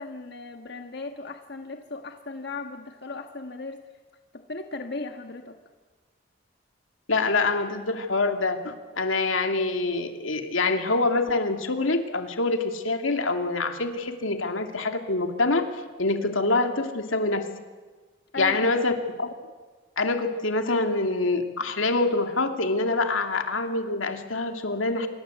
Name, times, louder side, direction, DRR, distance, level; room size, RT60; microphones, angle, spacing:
voice 1, 0.0-3.8 4.3-5.6 18.3-18.8, left 3 dB, 55° left, 5 dB, 1.5 m, -36 dB
voice 2, 7.1-15.7 16.0-17.5 18.4-18.9 19.2-19.3 20.0-25.1, left 3 dB, 90° left, 5 dB, 2.6 m, -25 dB
27.0 x 23.5 x 8.1 m, 1.4 s
head